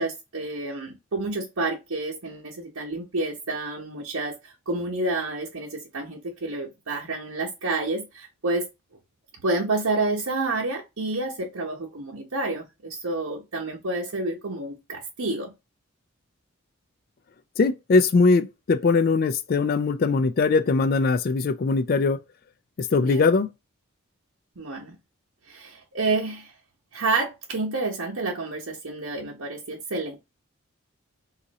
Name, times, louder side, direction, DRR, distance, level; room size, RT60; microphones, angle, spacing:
voice 1, 0.0-8.7 9.4-15.5 22.9-23.3 24.6-25.0 25.5-26.5 26.9-30.2, right 2 dB, 80° right, 0.9 m, -29 dB
voice 2, 17.6-22.2 22.8-23.5, left 4 dB, 45° left, 0.3 m, -21 dB
2.7 x 2.5 x 4.0 m
head